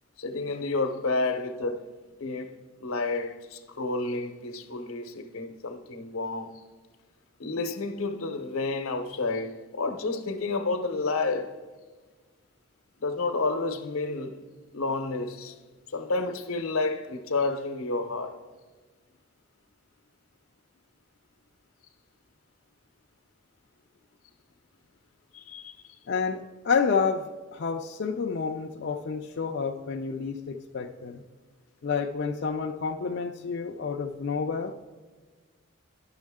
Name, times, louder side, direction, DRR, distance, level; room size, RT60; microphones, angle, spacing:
voice 1, 0.2-1.9 2.2-2.5 2.8-6.5 7.4-11.6 13.0-14.4 14.7-15.6 15.9-18.4 25.3-26.0, left 3 dB, 85° left, 0.7 m, -30 dB
voice 2, 26.1-31.2 31.8-34.7, left 5 dB, 55° left, 0.4 m, -29 dB
10.5 x 6.3 x 3.5 m
head